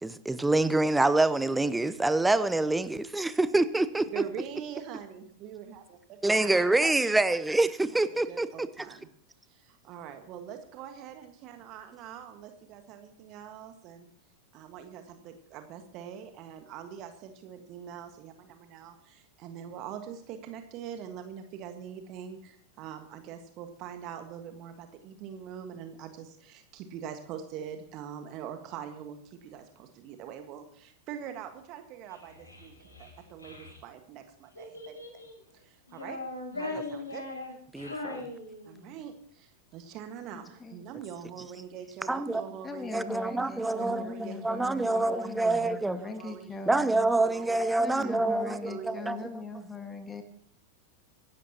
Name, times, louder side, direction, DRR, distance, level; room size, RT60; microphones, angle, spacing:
voice 1, 0.0-4.2 6.2-8.9 37.7-38.2 42.1-42.4 42.9-46.0 46.7-49.2, right 2 dB, 5° right, 0.7 m, -26 dB
voice 2, 4.1-6.6 7.9-8.0 8.2-9.1 9.5-14.1 14.5-35.0 35.5-36.2 36.5-37.3 38.7-43.2 43.6-46.6 47.2-49.1, right 8 dB, 40° right, 1.6 m, -43 dB
Child speech kid speaking, 32.1-33.8 34.5-35.4 35.9-39.0, left 2 dB, 75° left, 6.0 m, -40 dB
voice 3, 40.3-40.8 42.6-47.1 47.8-50.2, left 3 dB, 15° left, 1.8 m, -41 dB
25.0 x 12.0 x 3.0 m
figure-of-eight pair, 90°, 0 cm